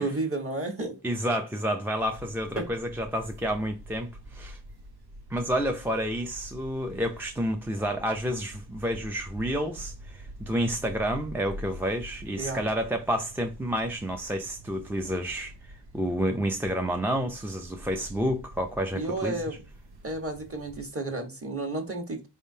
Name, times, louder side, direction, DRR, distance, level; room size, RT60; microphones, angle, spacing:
voice 1, 0.0-1.0 2.6-2.7 12.3-12.6 18.9-19.6 20.0-22.3, right 2 dB, 30° right, 1.3 m, -32 dB
voice 2, 1.0-4.6 5.3-15.5 15.9-19.6, equal, 5° right, 0.4 m, -29 dB
sound 1, 2.0-20.9, right 1 dB, 65° right, 0.8 m, -46 dB
4.5 x 3.6 x 2.7 m
cardioid pair, 75°, 42 cm